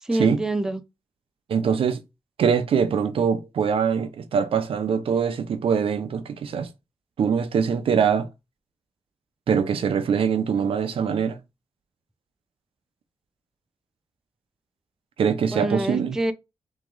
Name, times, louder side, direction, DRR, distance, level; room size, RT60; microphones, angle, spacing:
voice 1, 0.0-0.8 15.5-16.3, right 2 dB, 5° right, 0.5 m, -26 dB
voice 2, 1.5-2.0 2.4-6.7 7.2-8.3 9.5-11.4 15.2-16.2, right 7 dB, 75° right, 0.6 m, -23 dB
3.6 x 3.0 x 3.7 m
wide cardioid pair, 165°, 10 cm